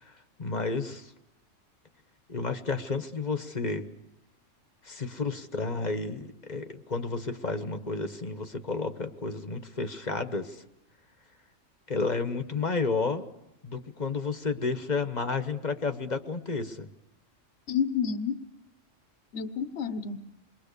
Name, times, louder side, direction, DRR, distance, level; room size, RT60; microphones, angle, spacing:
voice 1, 0.4-1.1 2.3-3.9 4.8-10.6 11.9-13.3 13.6-16.9, left 4 dB, 35° left, 8 dB, 1.3 m, -31 dB
voice 2, 17.7-18.4 19.3-20.3, left 7 dB, 60° left, 10 dB, 1.4 m, -30 dB
28.0 x 22.5 x 6.8 m, 0.87 s
omnidirectional pair, 1.3 m